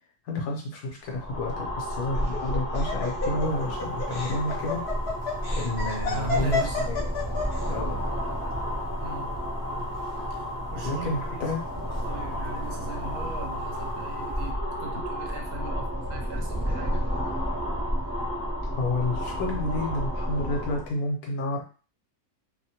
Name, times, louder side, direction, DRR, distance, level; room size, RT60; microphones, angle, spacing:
voice 1, 0.2-4.8 5.5-7.0 7.6-8.0 10.8-11.6 18.7-21.6, left 2 dB, 75° left, -1 dB, 1.3 m, -30 dB
sound 1, 1.0-20.9, equal, 5° right, 0.4 m, -31 dB
Laughter, 2.1-7.6, left 4 dB, 55° left, 0.8 m, -30 dB
sound 2, 3.4-14.5, right 1 dB, 45° right, 0.8 m, -45 dB
voice 2, 6.1-6.9 9.0-9.3 10.3-10.4 10.7-11.6 12.0-17.0, right 2 dB, 75° right, 3 dB, 1.1 m, -39 dB
2.9 x 2.1 x 2.8 m, 0.37 s
omnidirectional pair, 1.7 m